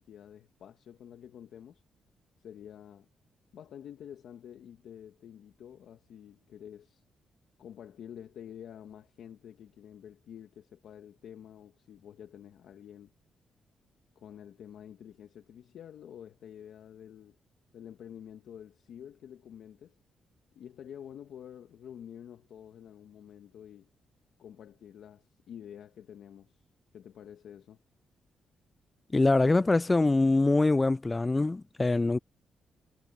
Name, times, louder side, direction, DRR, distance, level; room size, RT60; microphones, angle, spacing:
voice 1, 0.0-1.8 2.4-3.1 3.5-7.0 7.6-13.1 14.1-17.4 17.7-19.9 20.5-23.9 24.4-26.6 26.9-27.8, left 9 dB, 75° left, 1.3 m, -48 dB
voice 2, 29.1-32.2, left 2 dB, 20° left, 0.4 m, -24 dB
cardioid pair, 85°, 0 cm